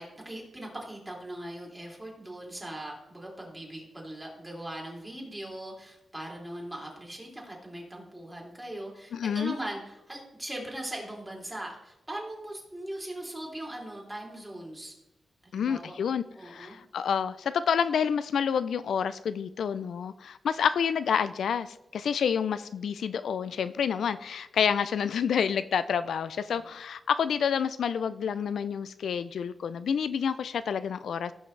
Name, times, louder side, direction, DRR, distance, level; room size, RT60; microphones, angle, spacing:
voice 1, 0.0-14.9 15.4-16.0 16.3-16.8, right 1 dB, 15° right, -2 dB, 3.0 m, -40 dB
voice 2, 9.1-9.6 15.5-31.3, left 7 dB, 85° left, 13 dB, 0.3 m, -28 dB
17.0 x 5.7 x 3.2 m, 0.90 s
cardioid pair, 90°, 0 cm